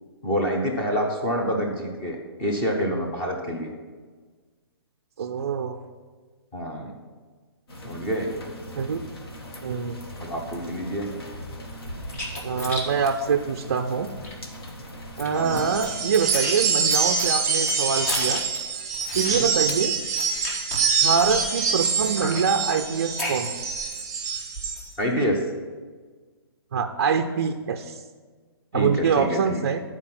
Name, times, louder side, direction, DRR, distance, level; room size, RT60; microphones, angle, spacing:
voice 1, 0.2-3.7 6.5-6.9 7.8-8.3 10.2-11.1 15.3-15.7 19.1-19.5 25.0-25.4 28.7-29.6, equal, 15° left, 0 dB, 0.8 m, -27 dB
voice 2, 5.2-5.8 8.8-9.0 9.6-10.0 12.4-14.1 15.2-18.4 19.1-19.9 21.0-23.5 26.7-28.0 28.7-29.8, right 6 dB, 40° right, 5 dB, 0.4 m, -24 dB
sound 1, 7.7-16.0, equal, 70° left, 1.8 m, -40 dB
sound 2, 11.8-14.3 14.7-14.8 15.0-15.9 16.1-21.5 22.0-24.0 24.3-24.9, left 1 dB, 40° left, 1.4 m, -34 dB
sound 3, 15.4-24.8, right 5 dB, 10° right, 1.2 m, -25 dB
9.6 x 4.5 x 5.8 m, 1.4 s
hypercardioid pair, 175°, 13 cm